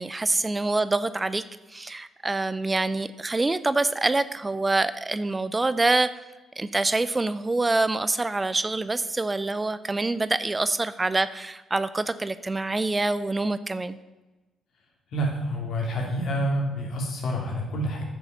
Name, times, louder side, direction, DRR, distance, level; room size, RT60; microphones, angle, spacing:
voice 1, 0.0-1.4 1.7-6.1 6.6-14.0, right 2 dB, 20° right, 14 dB, 0.5 m, -26 dB
voice 2, 15.1-18.0, equal, 70° left, 0 dB, 3.2 m, -28 dB
9.2 x 7.0 x 7.0 m, 1.1 s
cardioid pair, 90°, 0 cm